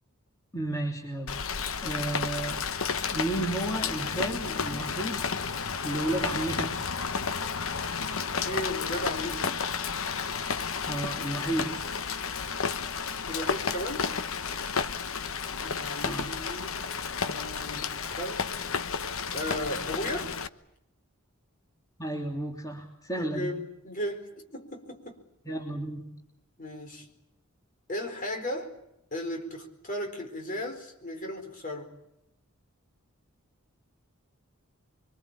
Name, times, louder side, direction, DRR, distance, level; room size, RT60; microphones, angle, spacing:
voice 1, 0.5-1.4 1.8-2.6 3.1-5.3 5.8-6.8 10.9-11.8 16.0-16.3 22.0-23.5 25.4-26.1, right 1 dB, 15° left, 0 dB, 3.1 m, -32 dB
Rain, 1.3-20.5, left 5 dB, 65° left, 1.0 m, -32 dB
voice 2, 8.3-9.6 13.3-14.2 15.6-16.8 17.2-18.5 19.3-20.4 23.2-25.2 26.6-27.1 27.9-28.8 29.1-31.9, left 1 dB, 35° left, 4 dB, 4.5 m, -36 dB
26.5 x 24.0 x 8.6 m, 0.80 s
head